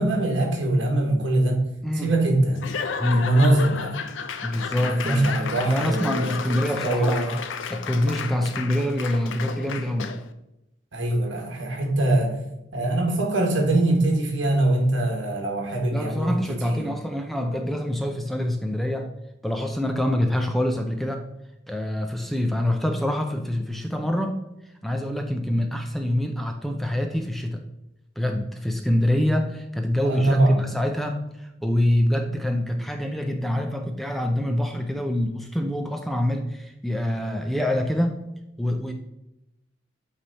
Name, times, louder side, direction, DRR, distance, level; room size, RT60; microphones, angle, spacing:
voice 1, 0.0-1.6 2.0-2.6 3.1-4.0 4.8-6.3 6.8-7.3 10.9-12.4 12.7-16.4 16.6-16.9 30.0-30.6, right 1 dB, 75° right, 1 dB, 1.6 m, -22 dB
voice 2, 1.8-2.1 3.0-3.3 4.4-5.3 5.6-7.3 7.7-10.1 15.9-19.1 19.4-21.3 21.7-24.4 24.8-27.6 28.2-38.9, left 1 dB, ahead, 4 dB, 0.5 m, -25 dB
Laughter / Applause / Crowd, 2.5-10.3, left 6 dB, 75° left, 0.5 m, -33 dB
8.5 x 3.4 x 4.0 m, 0.88 s
head